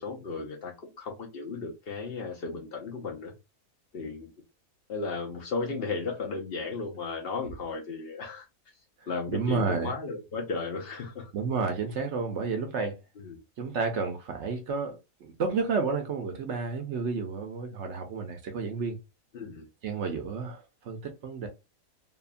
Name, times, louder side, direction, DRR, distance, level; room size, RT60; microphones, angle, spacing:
voice 1, 0.0-3.3 3.9-4.3 4.9-8.5 9.1-11.3 13.2-13.4 19.3-19.7, left 4 dB, 60° left, 0.6 m, -35 dB
voice 2, 9.3-9.9 11.3-13.0 13.6-19.0 19.8-21.5, right 4 dB, 65° right, 0.8 m, -31 dB
2.8 x 2.2 x 2.4 m
omnidirectional pair, 1.5 m